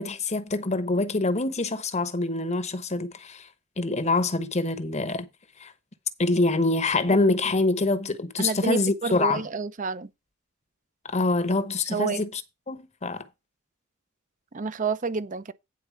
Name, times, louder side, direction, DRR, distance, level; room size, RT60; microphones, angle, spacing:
voice 1, 0.0-3.5 3.8-5.3 5.6-5.7 6.2-9.5 11.0-12.4 12.7-13.3, left 2 dB, 30° left, 1.0 m, -25 dB
voice 2, 8.4-10.1 11.9-12.2 14.5-15.5, right 5 dB, 35° right, 0.6 m, -29 dB
9.6 x 4.2 x 7.0 m
head